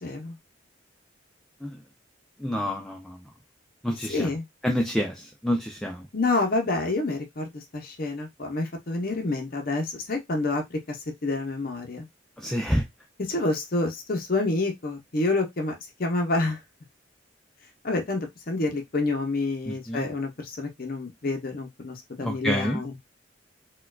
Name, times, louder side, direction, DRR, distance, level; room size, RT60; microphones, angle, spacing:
voice 1, 0.0-0.4 4.1-4.4 6.1-11.0 11.2-12.1 13.3-16.6 17.8-22.9, left 2 dB, 50° left, 0.7 m, -28 dB
voice 2, 2.4-3.2 3.8-4.3 4.6-6.1 12.4-12.8 19.7-20.0 22.2-22.8, equal, ahead, 0.4 m, -28 dB
4.3 x 2.3 x 2.3 m
head